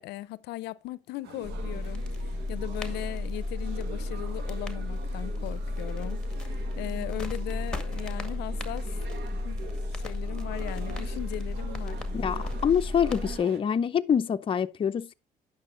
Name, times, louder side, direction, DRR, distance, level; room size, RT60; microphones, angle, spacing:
voice 1, 0.0-8.9 9.4-9.6 9.9-12.0, left 16 dB, 80° left, 0.5 m, -38 dB
sound 1, 1.2-13.6, right 5 dB, 75° right, 1.6 m, -45 dB
sound 2, 1.4-13.4, left 2 dB, 5° left, 1.9 m, -33 dB
voice 2, 12.1-15.1, left 8 dB, 30° left, 0.5 m, -26 dB
9.6 x 6.3 x 3.8 m
cardioid pair, 110°, 17 cm